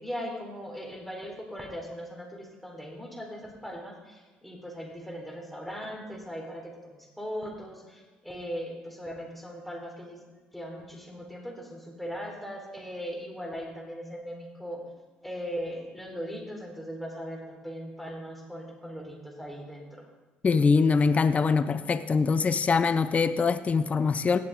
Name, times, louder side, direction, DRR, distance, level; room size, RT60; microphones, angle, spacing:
voice 1, 0.0-10.2 10.5-14.8 15.2-20.1, equal, ahead, -1 dB, 4.1 m, -39 dB
voice 2, 20.4-24.4, left 5 dB, 35° left, 11 dB, 0.7 m, -23 dB
17.5 x 7.6 x 3.8 m, 1.3 s
hypercardioid pair, 65°, 4 cm